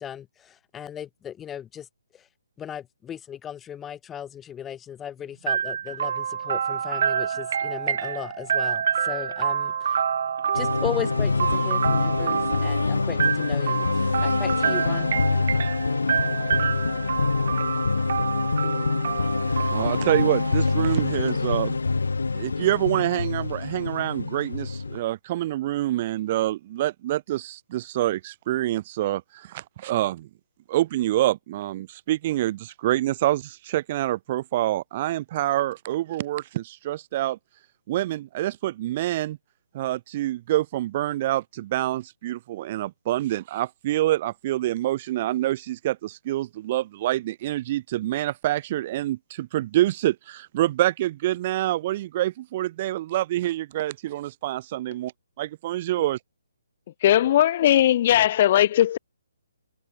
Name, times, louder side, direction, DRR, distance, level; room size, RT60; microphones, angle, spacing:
voice 1, 0.0-1.9 2.1-2.3 2.6-10.0 10.5-15.2, left 9 dB, 10° left, 5.9 m, -36 dB
sound 1, 5.5-21.3, right 8 dB, 55° right, 2.0 m, -28 dB
sound 2, 10.5-25.0, left 4 dB, 85° left, 3.9 m, -25 dB
voice 2, 19.7-21.8 22.3-30.3 30.7-37.4 37.9-39.4 39.7-55.1 55.4-56.2, right 14 dB, 35° right, 1.1 m, -26 dB
voice 3, 57.0-59.0, left 12 dB, 40° left, 0.7 m, -18 dB
hypercardioid pair, 155°, 0 cm